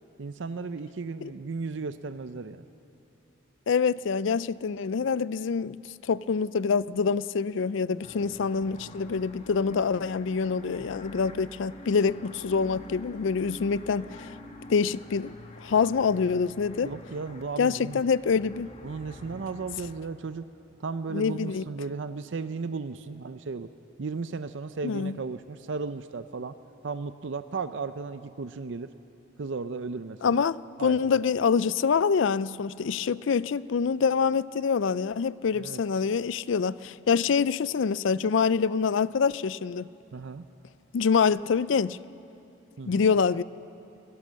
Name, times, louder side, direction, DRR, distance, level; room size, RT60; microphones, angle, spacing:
voice 1, 0.2-2.6 16.8-18.0 18.8-20.4 20.8-23.7 24.0-26.5 26.8-28.9 29.4-30.4 30.8-31.2 35.5-35.8 40.1-40.4 42.8-43.1, right 4 dB, 65° right, 0.5 m, -35 dB
voice 2, 3.7-5.8 6.0-14.3 14.7-15.3 15.6-16.9 17.6-18.7 21.1-21.6 24.8-25.2 30.2-39.9 40.9-42.0 42.9-43.4, left 5 dB, 65° left, 0.4 m, -26 dB
sound 1, 8.0-20.0, left 1 dB, 30° left, 1.5 m, -46 dB
24.0 x 17.0 x 7.5 m
head